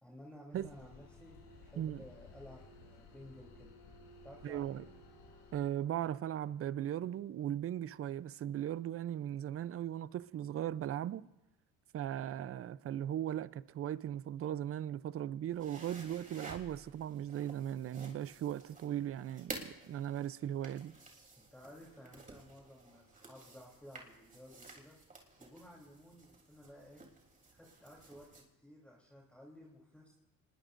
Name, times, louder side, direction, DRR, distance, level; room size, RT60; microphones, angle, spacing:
voice 1, 0.0-3.8 4.2-4.9 21.4-25.0 25.4-27.0 27.5-30.1, equal, 5° left, 3.5 m, -55 dB
sound 1, 0.5-5.7, left 2 dB, 70° left, 6.4 m, -56 dB
voice 2, 4.4-4.8 5.5-11.2 11.9-21.0, right 11 dB, 40° right, 0.6 m, -38 dB
sound 2, 15.5-28.4, right 3 dB, 25° right, 3.4 m, -53 dB
26.0 x 20.5 x 2.6 m
cardioid pair, 100°, 35 cm